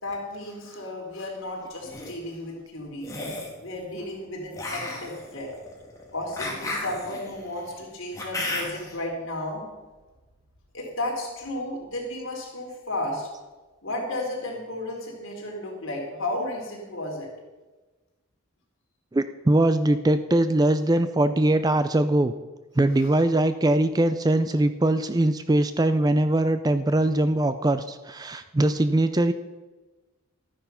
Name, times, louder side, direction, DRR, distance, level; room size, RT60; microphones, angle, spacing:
voice 1, 0.0-3.2 3.6-5.5 6.1-9.6 10.7-13.3 13.8-17.3, left 1 dB, 60° left, -1 dB, 3.8 m, -33 dB
sound 1, 1.7-2.1 3.0-3.6 4.5-9.0, left 2 dB, 15° left, 2.2 m, -34 dB
voice 2, 19.1-22.3 22.8-29.3, right 1 dB, 15° right, 11 dB, 0.4 m, -22 dB
13.0 x 9.7 x 5.7 m, 1.2 s
head